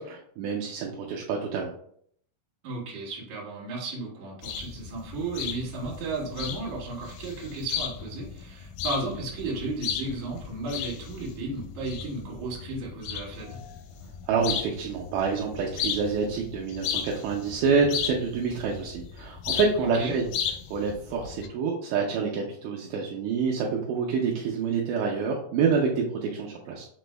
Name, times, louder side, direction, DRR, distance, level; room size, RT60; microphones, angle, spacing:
voice 1, 0.0-1.7 14.2-20.3 20.7-26.9, right 5 dB, 80° right, -2 dB, 1.9 m, -27 dB
voice 2, 2.6-13.6 19.8-20.1, right 2 dB, 65° right, -4 dB, 2.3 m, -34 dB
sound 1, 4.4-21.5, left 8 dB, 85° left, 2.3 m, -36 dB
6.0 x 2.0 x 3.2 m, 0.66 s
omnidirectional pair, 3.9 m